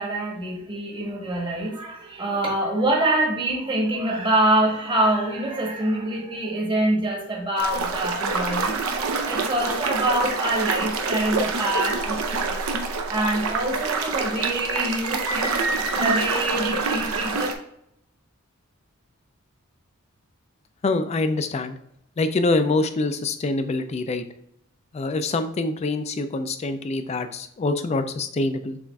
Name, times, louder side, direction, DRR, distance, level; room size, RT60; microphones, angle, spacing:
voice 1, 0.0-12.6 13.1-17.5, right 1 dB, 25° right, -2 dB, 1.0 m, -25 dB
sound 1, 7.6-17.5, right 4 dB, 80° right, 0.6 m, -27 dB
voice 2, 20.8-21.8 22.2-24.2 24.9-28.8, left 3 dB, 30° left, 9 dB, 0.3 m, -25 dB
7.0 x 2.5 x 2.2 m, 0.75 s
head